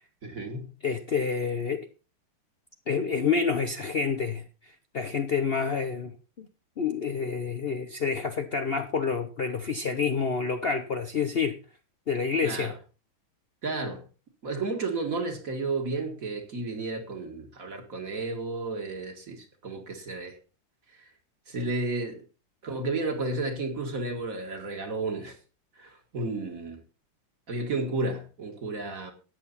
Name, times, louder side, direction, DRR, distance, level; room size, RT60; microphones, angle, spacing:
voice 1, 0.2-0.7 12.4-12.8 13.6-14.0 14.4-20.4 20.9-21.1 21.5-22.2 22.6-25.4 25.8-26.8 27.5-29.1, right 3 dB, 40° right, 2.2 m, -32 dB
voice 2, 0.8-1.9 2.9-4.4 4.9-6.5 6.8-11.6 12.1-12.7, left 5 dB, 90° left, 0.5 m, -28 dB
13.0 x 9.1 x 4.1 m
omnidirectional pair, 2.3 m